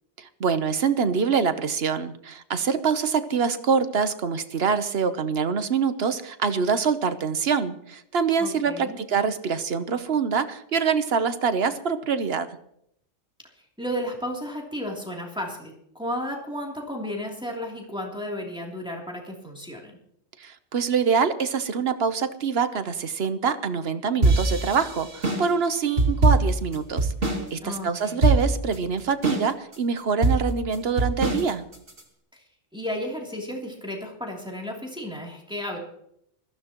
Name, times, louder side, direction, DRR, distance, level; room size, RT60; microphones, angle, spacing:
voice 1, 0.2-12.6 20.4-31.6, right 6 dB, 60° right, 11 dB, 1.1 m, -25 dB
voice 2, 8.4-9.0 13.8-20.0 27.6-28.2 32.3-32.4 32.7-35.8, equal, 5° right, -1 dB, 3.0 m, -33 dB
sound 1, 24.2-27.5 27.7-27.8 28.2-28.8 29.2-29.8 30.2-32.0, right 2 dB, 75° right, 2.8 m, -22 dB
20.5 x 14.5 x 3.0 m, 0.73 s
omnidirectional pair, 1.2 m